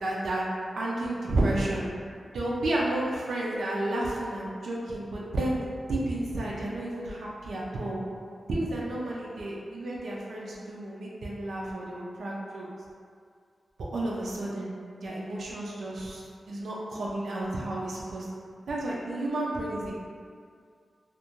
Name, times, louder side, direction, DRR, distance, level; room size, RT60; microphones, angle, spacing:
voice 1, 0.0-0.5 0.7-1.9 2.3-8.0 8.5-12.7 13.9-18.3 18.7-19.9, right 1 dB, 85° right, -5 dB, 0.4 m, -31 dB
2.4 x 2.1 x 2.9 m, 2.2 s
cardioid pair, 70°, 0 cm